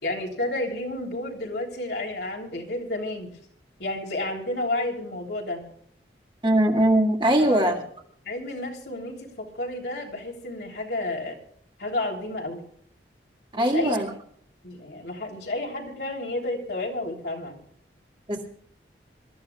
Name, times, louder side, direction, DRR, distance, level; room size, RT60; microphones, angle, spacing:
voice 1, 0.0-3.3 3.8-5.6 7.4-7.7 8.2-11.4 11.8-12.6 13.5-14.0 14.6-17.6, left 2 dB, 70° left, 3.4 m, -31 dB
voice 2, 6.4-7.8 13.5-14.1 18.3-18.5, right 1 dB, 25° right, 2.0 m, -21 dB
26.0 x 13.5 x 2.4 m
head